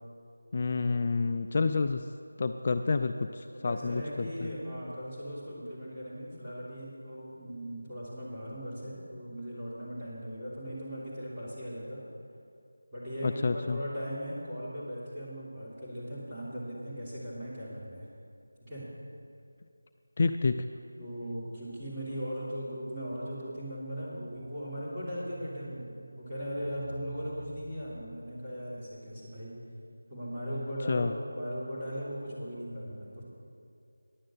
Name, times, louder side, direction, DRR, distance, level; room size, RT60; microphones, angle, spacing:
voice 1, 0.5-2.1 2.4-4.5 13.2-13.8 20.2-20.7 30.9-31.1, left 4 dB, 35° left, 8 dB, 0.3 m, -29 dB
voice 2, 3.5-12.0 12.9-18.1 18.6-18.8 21.0-29.5 30.1-33.2, equal, 15° right, -11 dB, 3.3 m, -38 dB
sound 1, 23.0-28.4, right 2 dB, 40° right, 1.5 m, -47 dB
10.5 x 7.6 x 7.7 m, 2.6 s
figure-of-eight pair, 165°, 0 cm